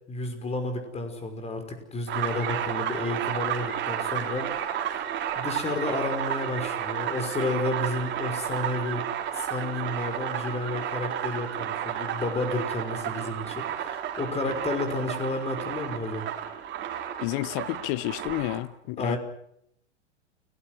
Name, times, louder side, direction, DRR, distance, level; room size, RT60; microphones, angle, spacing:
voice 1, 0.1-5.0 5.4-9.0 9.3-16.3 19.0-19.2, left 2 dB, 20° left, 5.6 m, -31 dB
sound 1, 2.1-18.6, right 9 dB, 30° right, 4.0 m, -32 dB
voice 2, 17.2-19.2, left 18 dB, 45° left, 1.2 m, -30 dB
29.5 x 19.5 x 6.3 m
hypercardioid pair, 105°, 34 cm